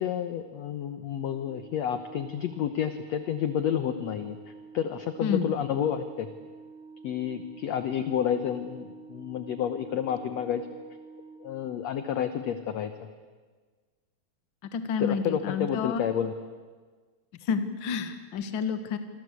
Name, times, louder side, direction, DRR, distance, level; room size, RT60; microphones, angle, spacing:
voice 1, 0.0-6.3 7.0-10.7 11.4-13.1 15.0-16.3, left 9 dB, 70° left, 10 dB, 1.7 m, -30 dB
Organ, 1.2-12.1, right 4 dB, 50° right, 7.1 m, -49 dB
voice 2, 14.6-16.0 17.4-19.0, left 6 dB, 50° left, 9 dB, 1.6 m, -29 dB
27.5 x 24.0 x 8.3 m, 1.5 s
omnidirectional pair, 4.3 m